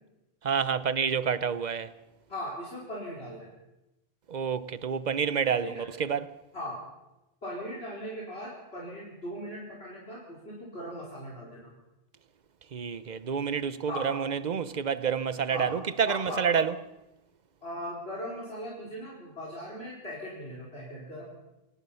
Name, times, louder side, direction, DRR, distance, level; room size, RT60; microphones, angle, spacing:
voice 1, 0.4-1.9 4.3-5.7 6.0-6.3 12.7-16.7, right 7 dB, 45° right, 0.9 m, -28 dB
voice 2, 2.3-3.5 5.6-5.9 6.5-6.8 7.4-11.7 13.9-14.1 15.5-15.8 16.1-16.7 17.6-21.2, equal, 75° left, 4.6 m, -39 dB
25.5 x 18.5 x 5.7 m
omnidirectional pair, 1.1 m